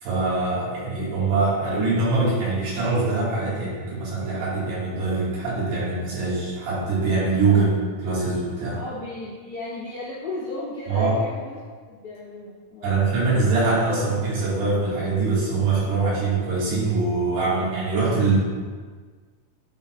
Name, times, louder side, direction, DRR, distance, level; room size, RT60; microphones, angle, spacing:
voice 1, 0.0-8.8 10.9-11.1 12.8-18.4, right 3 dB, 80° right, -8 dB, 4.1 m, -23 dB
voice 2, 8.8-13.2, left 2 dB, 90° left, -10 dB, 1.2 m, -35 dB
10.0 x 4.6 x 2.4 m, 1.5 s
omnidirectional pair, 4.7 m